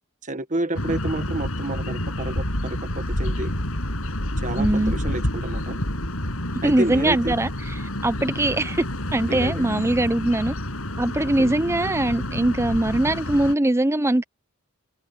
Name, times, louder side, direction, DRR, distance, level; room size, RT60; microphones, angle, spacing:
voice 1, 0.2-3.5 4.4-5.8 6.6-7.3 9.3-9.6 11.4-11.6, right 2 dB, 40° right, 1.5 m, -30 dB
sound 1, 0.7-13.5, left 1 dB, 90° left, 7.7 m, -28 dB
voice 2, 4.6-4.9 6.6-7.5 8.0-8.8 9.1-10.5 11.0-14.2, right 1 dB, 15° right, 0.7 m, -21 dB
open air
head